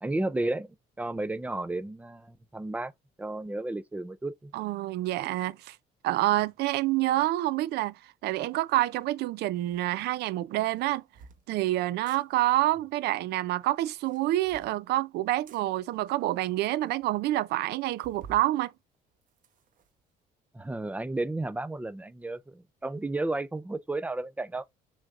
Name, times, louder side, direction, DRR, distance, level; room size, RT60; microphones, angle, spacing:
voice 1, 0.0-2.9 3.2-4.5 20.5-24.6, right 2 dB, 10° right, 0.4 m, -33 dB
voice 2, 4.5-5.8 6.0-7.9 8.2-11.0 11.5-18.7, right 16 dB, 75° right, 0.5 m, -27 dB
sound 1, 9.7-9.8 10.7-11.4 11.9-12.2 13.9-14.8 15.5-15.6 16.3-16.4 16.6-16.7 17.0-17.1 18.0-18.5 18.9-19.9, right 6 dB, 50° right, 0.9 m, -51 dB
6.1 x 3.4 x 2.4 m
cardioid pair, 110°, 17 cm